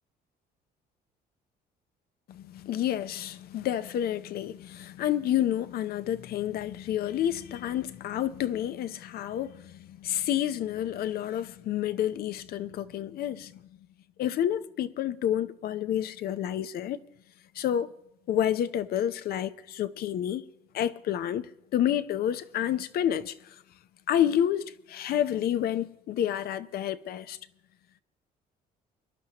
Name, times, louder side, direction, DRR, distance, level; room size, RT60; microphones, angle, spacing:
voice 1, 2.3-13.5 14.2-17.0 17.6-17.9 18.3-20.5 20.7-23.5 24.1-27.4, left 10 dB, 65° left, 0.7 m, -29 dB
25.0 x 11.5 x 3.0 m
cardioid pair, 110°, 17 cm